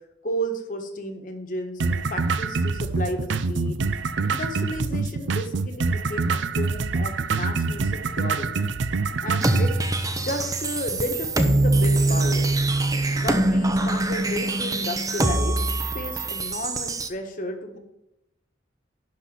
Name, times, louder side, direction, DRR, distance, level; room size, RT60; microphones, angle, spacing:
voice 1, 0.2-3.8 4.2-8.7 9.2-9.7 10.2-12.6 13.2-15.6 15.9-17.8, equal, 45° left, 4 dB, 1.5 m, -33 dB
sound 1, 1.8-9.8, right 4 dB, 75° right, 0.5 m, -26 dB
sound 2, 9.4-17.1, right 2 dB, 20° right, 0.7 m, -23 dB
11.5 x 4.3 x 7.3 m, 0.89 s
head